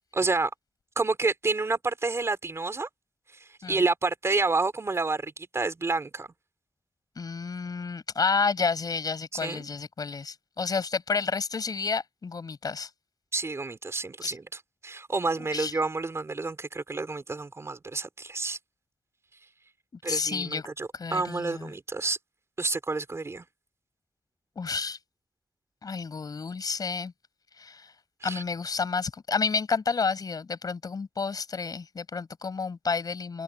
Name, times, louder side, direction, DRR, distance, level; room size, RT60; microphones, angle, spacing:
voice 1, 0.1-0.5 1.0-2.9 3.7-6.3 9.4-9.7 13.3-18.6 20.0-22.2 22.6-23.4 28.2-28.4, right 3 dB, 40° right, 3.7 m, -29 dB
voice 2, 7.2-12.9 14.2-14.3 15.5-15.7 20.0-20.7 20.9-21.7 24.6-25.0 25.8-27.1 27.6-27.9 28.2-33.4, left 5 dB, 60° left, 5.9 m, -30 dB
wide cardioid pair, 110°, 7 cm